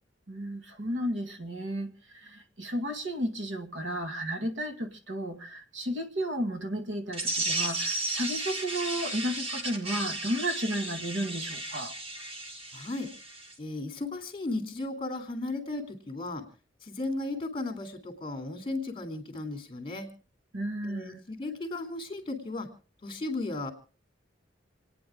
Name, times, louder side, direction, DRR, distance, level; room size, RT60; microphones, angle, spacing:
voice 1, 0.3-11.9 20.5-21.2, equal, 85° right, 2.2 m, -33 dB
sound 1, 7.1-13.5, right 2 dB, 30° right, 1.9 m, -34 dB
voice 2, 12.7-13.1 13.6-16.5 16.8-20.1 20.8-22.7 23.0-23.7, left 2 dB, 30° left, 3.1 m, -35 dB
28.5 x 9.8 x 3.6 m
head